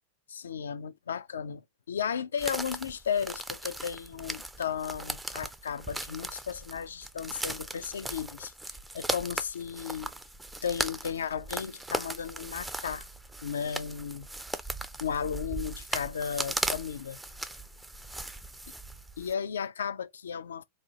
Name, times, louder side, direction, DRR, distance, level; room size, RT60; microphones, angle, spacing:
voice 1, 0.3-1.6 1.9-10.1 10.6-13.1 13.4-14.3 15.0-17.2 19.2-20.6, left 7 dB, 70° left, 0.3 m, -34 dB
sound 1, 2.4-19.3, right 2 dB, 5° right, 0.4 m, -38 dB
3.9 x 2.3 x 2.8 m
figure-of-eight pair, 90°, 0 cm